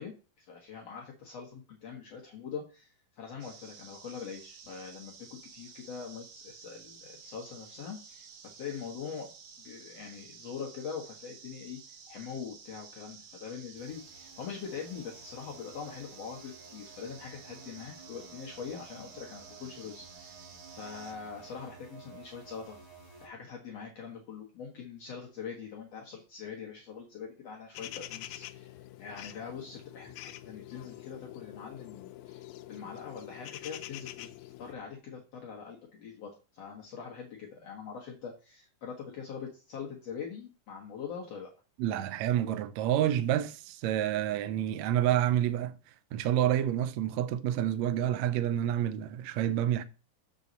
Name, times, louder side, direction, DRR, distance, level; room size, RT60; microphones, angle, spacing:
voice 1, 0.0-5.3 5.5-8.3 8.5-9.3 9.6-11.8 12.1-20.5 20.8-22.8 23.2-34.3 34.6-41.5, left 6 dB, 55° left, 2.1 m, -43 dB
sound 1, 3.4-21.1, right 6 dB, 60° right, 2.5 m, -52 dB
sound 2, 13.7-23.3, right 4 dB, 5° right, 2.6 m, -54 dB
sound 3, 27.7-34.7, left 14 dB, 85° left, 2.3 m, -46 dB
voice 2, 41.8-45.7 46.1-49.8, right 11 dB, 80° right, 1.6 m, -28 dB
7.3 x 6.2 x 4.0 m
omnidirectional pair, 3.9 m